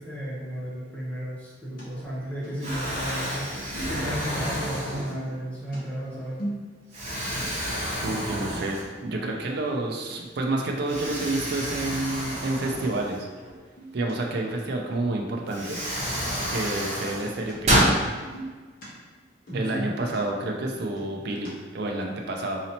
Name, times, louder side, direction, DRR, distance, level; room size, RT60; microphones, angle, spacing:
voice 1, 0.0-3.5 3.8-6.5 19.5-20.0, equal, 5° left, -7 dB, 0.9 m, -33 dB
sound 1, 1.8-1.9 2.4-3.1 3.7-4.5 5.1-7.1 7.4-7.5 7.9-8.0 8.3-8.8 9.3-9.5 10.1-10.2 10.6-10.7 11.0-11.5 11.9-12.3 12.8-12.9 13.3-14.2 17.5-17.6 17.8-18.9 19.2-21.5, right 1 dB, 50° left, 1.1 m, -39 dB
Explosion, 1.9-2.3 2.6-5.4 6.0-6.2 6.9-9.2 9.5-9.6 10.9-13.5 14.9-15.0 15.5-18.0, equal, 35° right, 1.1 m, -29 dB
voice 2, 8.0-13.3 13.9-15.8 16.5-17.9 19.5-22.6, right 2 dB, 60° right, 1 dB, 0.4 m, -29 dB
4.0 x 2.8 x 2.8 m, 1.4 s
head